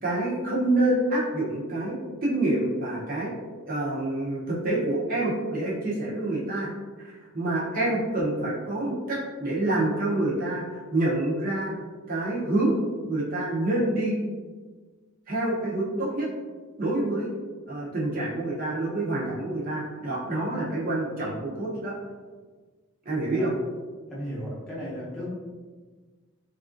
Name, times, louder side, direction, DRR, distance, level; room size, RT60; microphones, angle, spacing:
voice 1, 0.0-3.3 3.6-6.7 7.0-12.8 13.1-14.2 15.3-16.3 16.8-17.3 17.7-22.0 23.0-23.5, right 1 dB, 40° right, -6 dB, 0.7 m, -27 dB
voice 2, 24.1-25.3, equal, 5° left, -8 dB, 0.7 m, -35 dB
3.3 x 2.4 x 2.5 m, 1.4 s
head